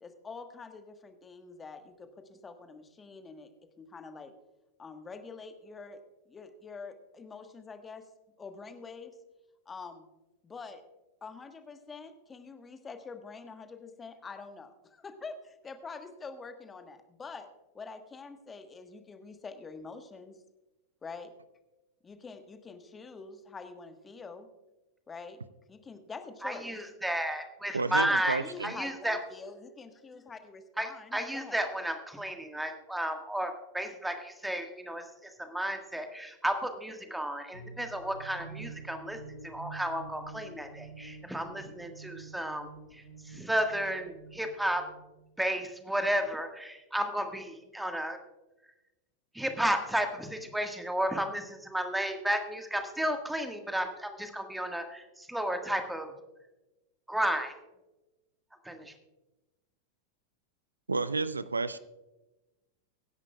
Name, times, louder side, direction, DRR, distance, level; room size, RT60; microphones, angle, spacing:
voice 1, 0.0-3.5 3.8-4.3 4.8-6.0 6.3-8.0 8.4-9.1 9.7-10.1 10.4-10.8 11.2-14.7 15.0-17.5 17.7-20.3 21.0-21.3 22.0-24.5 25.1-25.4 25.7-26.7 27.9-31.6, left 4 dB, 15° left, 8 dB, 1.3 m, -46 dB
voice 2, 26.4-29.2 30.8-35.0 35.4-39.2 39.4-44.8 45.4-48.2 49.3-56.1 57.1-57.5 58.6-58.9, right 1 dB, 5° right, 6 dB, 1.6 m, -33 dB
voice 3, 27.7-28.7 60.9-61.8, right 3 dB, 80° right, 16 dB, 0.4 m, -31 dB
sound 1, 37.5-45.3, right 4 dB, 75° left, 1.8 m, -48 dB
24.0 x 10.5 x 2.3 m, 1.0 s
figure-of-eight pair, 90°, 0 cm